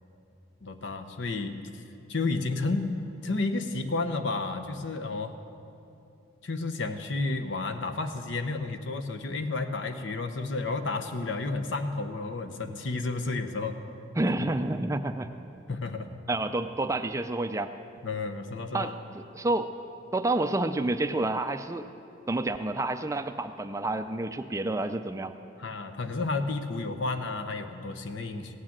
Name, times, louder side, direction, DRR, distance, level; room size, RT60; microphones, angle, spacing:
voice 1, 0.6-1.6 2.1-2.9 3.2-5.3 6.4-13.8 14.4-14.5 15.7-16.1 18.0-18.9 25.6-28.6, left 3 dB, 65° left, 8 dB, 0.9 m, -31 dB
voice 2, 14.2-15.3 16.3-17.7 18.7-19.7 20.1-21.9 22.3-25.3, right 2 dB, 15° right, 9 dB, 0.3 m, -29 dB
16.5 x 8.8 x 7.4 m, 2.7 s
head